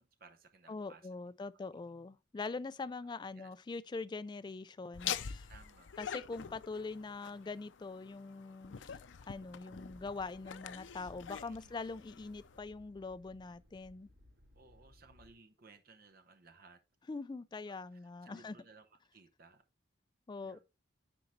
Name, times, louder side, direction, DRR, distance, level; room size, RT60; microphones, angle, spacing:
voice 1, 0.0-1.1 3.0-3.5 5.5-6.0 11.4-11.7 14.5-16.8 17.7-19.6 20.4-20.6, right 4 dB, 50° right, 0.8 m, -60 dB
voice 2, 0.7-5.5 6.0-9.0 9.3-14.1 17.1-18.6 20.3-20.6, left 3 dB, 25° left, 0.3 m, -43 dB
Laughter, 4.9-12.6, left 9 dB, 85° left, 0.5 m, -45 dB
sound 1, 9.7-15.3, left 1 dB, 85° right, 3.8 m, -63 dB
9.7 x 3.9 x 3.1 m
head